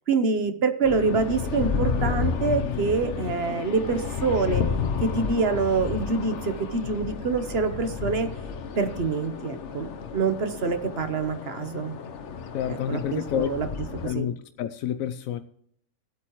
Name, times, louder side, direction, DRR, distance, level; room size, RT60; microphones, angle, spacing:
voice 1, 0.1-4.7 5.0-8.3 8.8-12.0 12.7-13.7 14.0-14.3, right 4 dB, 50° right, 1.2 m, -26 dB
sound 1, 0.8-14.1, left 6 dB, 65° left, 1.1 m, -31 dB
voice 2, 12.5-13.5 14.0-15.4, left 10 dB, 90° left, 1.0 m, -29 dB
17.5 x 8.4 x 3.1 m
omnidirectional pair, 1.4 m